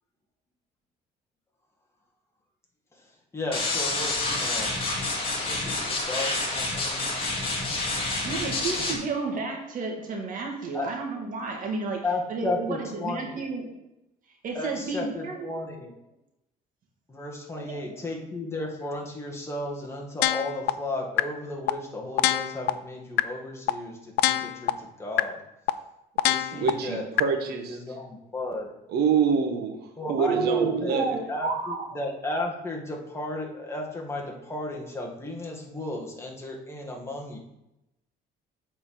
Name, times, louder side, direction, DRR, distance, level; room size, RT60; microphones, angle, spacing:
voice 1, 3.3-4.7 5.3-7.1 10.7-10.9 12.0-13.4 14.6-15.9 17.1-25.4 26.3-27.3 27.7-28.7 30.0-37.4, left 2 dB, 15° left, -1 dB, 1.9 m, -34 dB
sound 1, 3.5-8.9, left 2 dB, 35° left, 2.2 m, -28 dB
voice 2, 8.2-13.7 14.4-15.7 17.5-18.0 30.1-31.8, right 4 dB, 55° right, 1 dB, 2.1 m, -31 dB
sound 2, 20.2-20.7 21.2-21.3 21.7-21.8 22.2-22.7 23.2-23.3 23.7-23.8 24.2-24.7 25.2-25.3 25.7-25.8 26.2-26.7 27.2-27.3, left 16 dB, 90° left, 0.4 m, -22 dB
voice 3, 26.5-28.0 28.9-29.8 30.1-31.2, right 6 dB, 70° right, 5 dB, 1.4 m, -26 dB
8.1 x 4.5 x 6.0 m, 0.89 s
cardioid pair, 110°, 17 cm